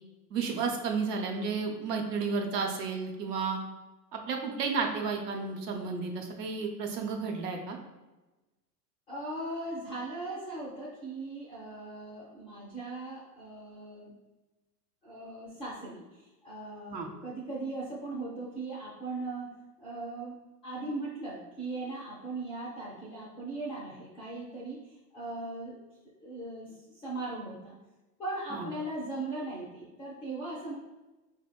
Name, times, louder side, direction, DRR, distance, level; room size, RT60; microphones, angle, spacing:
voice 1, 0.3-3.6 4.1-7.8 16.9-17.1 28.5-28.7, right 5 dB, 75° right, 2 dB, 0.8 m, -32 dB
voice 2, 9.1-14.1 15.0-19.5 19.8-20.3 20.6-25.8 26.2-27.8 28.2-30.8, right 2 dB, 15° left, -6 dB, 0.3 m, -39 dB
4.4 x 2.0 x 2.2 m, 1.1 s
hypercardioid pair, 105°, 49 cm